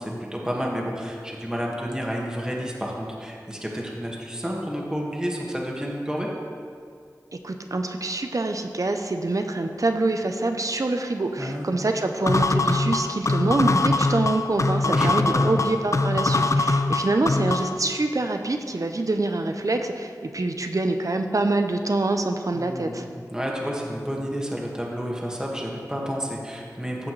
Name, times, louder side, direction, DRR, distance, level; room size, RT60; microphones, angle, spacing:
voice 1, 0.0-6.3 11.4-11.8 14.8-15.5 22.5-27.1, equal, 10° right, -2 dB, 1.7 m, -30 dB
voice 2, 7.3-23.0, right 2 dB, 55° right, 6 dB, 0.6 m, -25 dB
sound 1, 12.3-17.8, left 2 dB, 50° left, 0.4 m, -22 dB
14.5 x 6.1 x 3.2 m, 2.2 s
wide cardioid pair, 40°, 7 cm